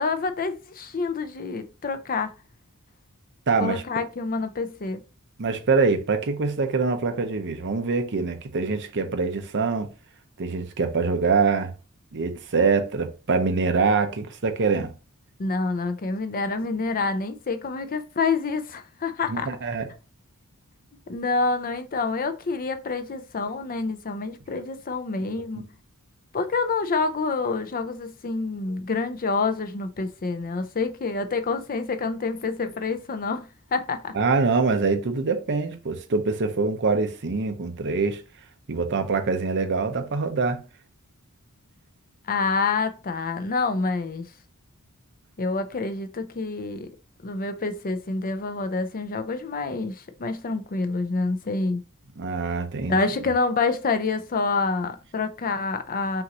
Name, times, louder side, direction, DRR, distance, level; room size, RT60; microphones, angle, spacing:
voice 1, 0.0-2.3 3.6-5.0 15.4-19.5 21.1-25.6 26.3-34.1 42.3-44.3 45.4-46.9 47.2-51.8 52.9-56.2, left 4 dB, 40° left, 0.5 m, -27 dB
voice 2, 3.5-3.8 5.4-9.9 10.4-11.7 12.1-14.9 19.3-19.9 34.1-38.2 38.7-40.6 52.2-53.0, right 4 dB, 55° right, 0.7 m, -24 dB
5.7 x 2.6 x 2.9 m
head